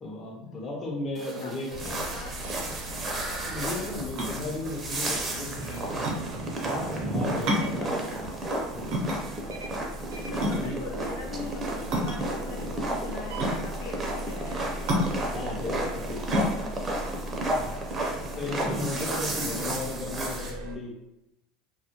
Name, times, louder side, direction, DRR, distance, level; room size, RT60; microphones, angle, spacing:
voice 1, 0.0-1.7 3.4-6.1 6.7-9.0 10.6-10.8 15.3-16.5 17.5-17.8 18.4-20.9, left 2 dB, 30° left, 0 dB, 0.7 m, -36 dB
sound 1, 1.1-20.5, right 1 dB, 25° right, 0.6 m, -33 dB
voice 2, 1.3-2.3 7.5-8.0 10.2-14.6, left 4 dB, 75° left, 0 dB, 0.6 m, -41 dB
sound 2, 1.7-20.8, right 1 dB, 85° right, 0.3 m, -40 dB
sound 3, 4.2-18.4, equal, 65° right, 0.7 m, -31 dB
2.3 x 2.1 x 2.9 m, 0.90 s
supercardioid pair, 95°, 0 cm